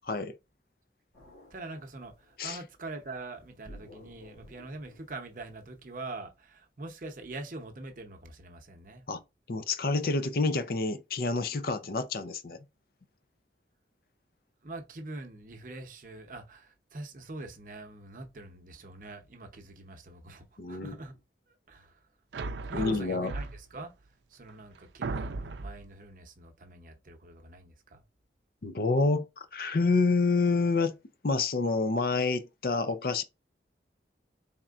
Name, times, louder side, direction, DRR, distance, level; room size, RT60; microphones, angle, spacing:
sound 1, 1.1-2.6 3.6-6.1, left 1 dB, 75° left, 2.3 m, -53 dB
voice 1, 1.5-9.0 14.6-21.2 21.5-22.0 22.7-23.9 24.3-28.0, right 2 dB, 50° right, 0.7 m, -44 dB
voice 2, 9.5-12.6 20.6-21.0 22.7-23.3 28.6-31.0 31.2-33.2, left 3 dB, 55° left, 0.5 m, -28 dB
sound 2, 22.3-23.8 24.5-24.6 25.0-25.9, right 3 dB, 90° right, 0.4 m, -36 dB
4.2 x 3.6 x 2.4 m
head